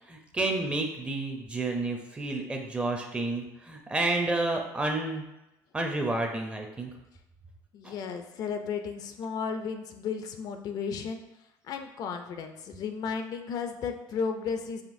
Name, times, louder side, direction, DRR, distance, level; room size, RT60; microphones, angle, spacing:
voice 1, 0.1-5.2 5.7-6.9 7.8-7.9, right 2 dB, 15° right, 2 dB, 0.5 m, -30 dB
voice 2, 7.7-11.2 11.6-14.8, left 6 dB, 55° left, 6 dB, 0.4 m, -34 dB
5.0 x 3.0 x 2.6 m, 0.93 s
cardioid pair, 135°, 8 cm